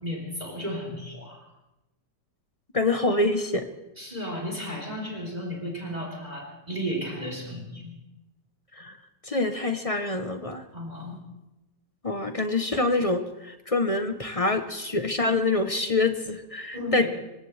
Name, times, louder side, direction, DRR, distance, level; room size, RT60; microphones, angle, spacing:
voice 1, 0.0-1.5 4.0-8.0 10.7-11.2 16.7-17.1, equal, 20° right, -2 dB, 3.7 m, -34 dB
voice 2, 2.7-3.7 8.8-9.0 9.2-10.6 12.0-17.1, left 2 dB, 30° left, 7 dB, 0.7 m, -26 dB
26.5 x 16.5 x 3.3 m, 0.96 s
omnidirectional pair, 1.9 m